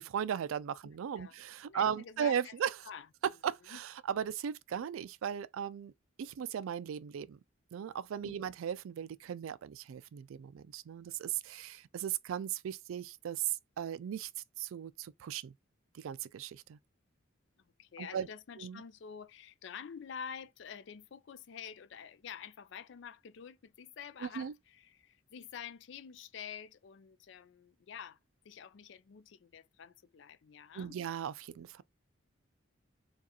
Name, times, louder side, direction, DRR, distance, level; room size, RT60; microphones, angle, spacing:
voice 1, 0.0-2.8 3.4-5.9 6.2-7.4 7.7-14.3 14.6-15.5 15.9-16.8 18.0-18.3 18.6-18.8 24.2-24.5 30.7-31.8, right 8 dB, 85° right, 0.3 m, -37 dB
voice 2, 1.7-2.5 2.8-3.1 3.7-3.8 8.2-8.4 17.8-28.2 28.4-31.0, left 7 dB, 60° left, 0.4 m, -48 dB
4.6 x 2.3 x 2.9 m
head